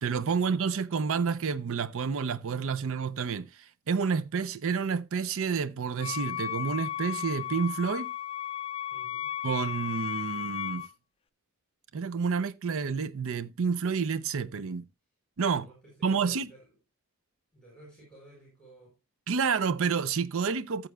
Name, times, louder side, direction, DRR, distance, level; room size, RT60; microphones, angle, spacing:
voice 1, 0.0-3.5 3.9-8.1 9.4-10.8 11.9-14.8 15.4-15.7 16.0-16.5 19.3-20.9, right 5 dB, 65° right, 0.5 m, -29 dB
Wind instrument woodwind instrument, 6.0-10.9, left 11 dB, 25° left, 0.4 m, -35 dB
voice 2, 8.9-9.3 15.5-16.7 17.5-19.0, right 2 dB, 5° left, 4.8 m, -54 dB
14.0 x 7.6 x 2.2 m
head